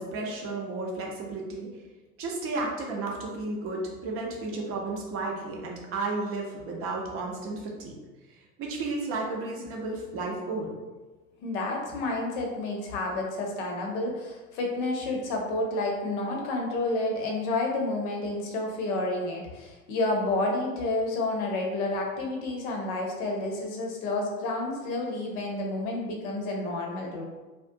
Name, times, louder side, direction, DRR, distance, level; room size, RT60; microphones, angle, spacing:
voice 1, 0.0-1.7 2.2-7.9 8.3-10.7, right 3 dB, 30° right, -1 dB, 0.6 m, -33 dB
voice 2, 11.4-27.2, left 2 dB, 55° left, 0 dB, 0.8 m, -30 dB
2.4 x 2.3 x 2.6 m, 1.2 s
figure-of-eight pair, 80°, 42 cm